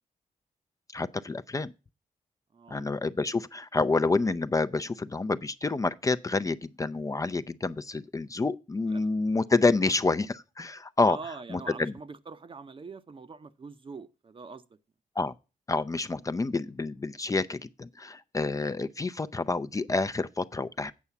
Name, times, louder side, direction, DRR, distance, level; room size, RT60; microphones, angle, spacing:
voice 1, 0.9-1.7 2.7-11.2 11.5-11.9 15.2-15.3 15.7-20.9, left 3 dB, 25° left, 0.5 m, -28 dB
voice 2, 2.5-2.8 8.9-9.1 11.0-14.8, right 4 dB, 40° right, 0.7 m, -43 dB
8.4 x 5.5 x 7.0 m
cardioid pair, 70°, 14 cm